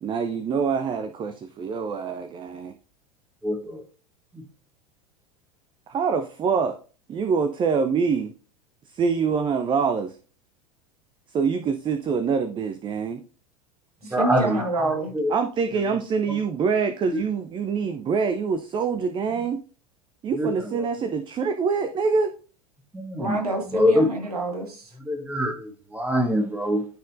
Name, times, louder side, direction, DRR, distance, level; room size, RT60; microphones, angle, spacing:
voice 1, 0.0-2.7 5.9-6.8 7.1-8.3 8.9-10.2 11.3-13.2 15.3-19.6 20.2-22.3, right 5 dB, 25° right, 0.6 m, -25 dB
voice 2, 3.4-3.8 4.3-4.4 14.0-14.7 15.1-15.3 16.3-16.4 20.4-20.5 22.9-23.4 23.7-24.1 25.0-26.9, left 1 dB, 10° right, 1.5 m, -24 dB
voice 3, 14.0-15.1 23.2-24.9, right 2 dB, 75° right, 1.9 m, -27 dB
13.0 x 4.3 x 2.6 m
figure-of-eight pair, 85°, 19 cm